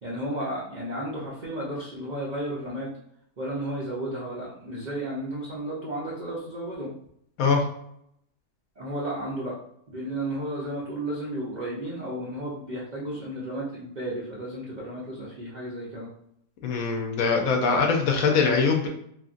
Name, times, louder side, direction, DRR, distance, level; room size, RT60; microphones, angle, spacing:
voice 1, 0.0-2.9 3.4-6.9 8.8-9.6 9.9-16.1 18.8-18.9, right 1 dB, 85° right, -6 dB, 0.4 m, -33 dB
voice 2, 16.6-18.9, left 5 dB, 70° left, 1 dB, 0.9 m, -22 dB
3.0 x 2.5 x 2.5 m, 0.71 s
omnidirectional pair, 1.7 m